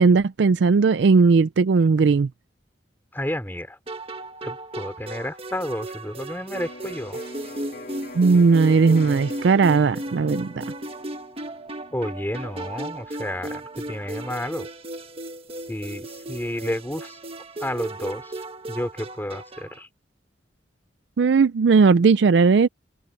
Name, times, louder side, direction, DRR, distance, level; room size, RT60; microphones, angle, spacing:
voice 1, 0.0-2.3 8.2-10.6 21.2-22.7, right 4 dB, 70° right, 0.4 m, -17 dB
voice 2, 3.1-3.8 4.4-7.2 11.9-14.7 15.7-17.2 17.6-18.4 18.7-19.9, left 1 dB, 10° left, 3.1 m, -31 dB
sound 1, 3.9-19.8, right 1 dB, 35° right, 1.5 m, -35 dB
Electric guitar, 6.5-14.3, left 2 dB, 55° left, 2.8 m, -43 dB
head